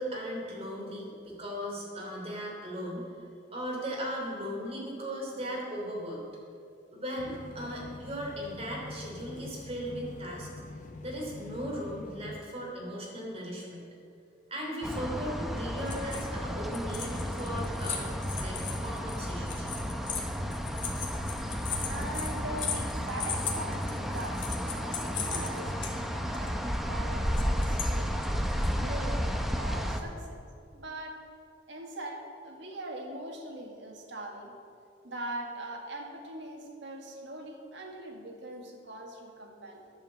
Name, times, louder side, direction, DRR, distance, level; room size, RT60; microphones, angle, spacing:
voice 1, 0.0-3.1 3.5-6.2 6.9-10.5 11.0-13.9 14.5-18.1 18.3-19.7, equal, 35° right, -2 dB, 2.9 m, -37 dB
sound 1, 7.2-12.4, left 2 dB, 45° left, 0.7 m, -45 dB
sound 2, 14.8-30.0, equal, ahead, 0.7 m, -32 dB
sound 3, 15.8-16.4 16.7-25.9 26.3-26.5 27.3-27.9 28.2-28.7, left 7 dB, 80° left, 1.7 m, -38 dB
voice 2, 21.9-28.2 28.7-29.3 29.6-30.4 30.7-31.3 31.7-34.6 35.0-39.9, right 1 dB, 70° right, 1 dB, 1.7 m, -41 dB
10.5 x 7.4 x 7.4 m, 2.4 s
head